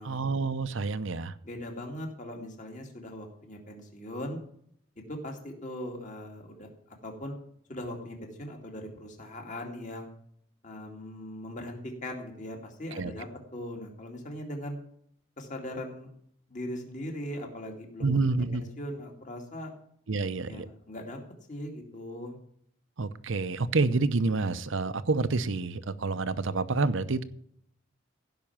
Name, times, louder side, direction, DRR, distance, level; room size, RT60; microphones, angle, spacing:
voice 1, 0.0-1.3 12.9-13.1 18.0-18.6 20.1-20.7 23.0-27.2, right 3 dB, 70° right, 13 dB, 0.7 m, -28 dB
voice 2, 1.4-4.4 5.1-7.3 7.7-10.1 10.6-13.3 13.5-14.8 15.4-16.1 16.5-19.7 20.5-21.2 21.5-22.4, left 1 dB, 35° left, 2 dB, 2.4 m, -40 dB
15.5 x 5.9 x 7.3 m, 0.68 s
head